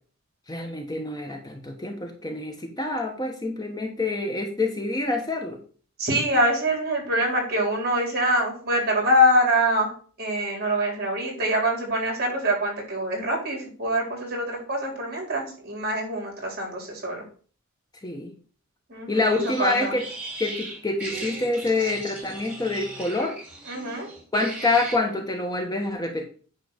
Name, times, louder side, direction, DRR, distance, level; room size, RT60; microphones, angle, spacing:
voice 1, 0.5-5.6 18.0-18.3 19.1-20.0 20.4-23.3 24.3-26.2, left 2 dB, 20° left, 2 dB, 1.1 m, -26 dB
voice 2, 6.0-9.9 10.2-17.2 18.9-19.2 19.6-19.9 23.7-24.1, equal, 50° right, 0 dB, 3.9 m, -24 dB
sound 1, 19.3-25.0, right 2 dB, 5° right, 2.6 m, -37 dB
9.5 x 3.4 x 6.6 m, 0.41 s
head